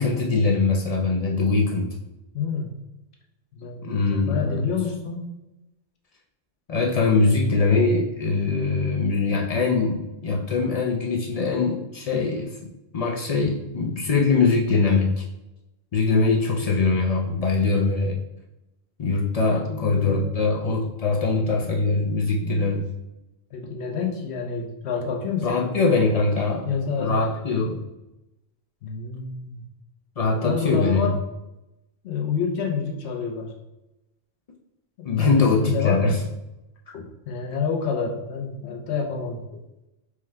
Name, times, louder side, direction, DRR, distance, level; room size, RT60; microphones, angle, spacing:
voice 1, 0.0-1.9 3.8-4.7 6.7-12.5 12.9-15.2 15.9-18.2 19.0-22.9 25.4-26.7 27.0-27.8 30.2-31.2 35.0-36.2, left 3 dB, 50° left, -1 dB, 0.5 m, -22 dB
voice 2, 2.3-2.7 3.6-5.2 16.1-16.2 19.5-20.3 23.5-25.7 26.7-27.1 28.8-29.6 30.4-31.1 32.0-33.5 35.2-36.2 36.9-39.4, left 6 dB, 85° left, 0 dB, 1.0 m, -28 dB
4.6 x 2.3 x 3.3 m, 0.96 s
omnidirectional pair, 1.1 m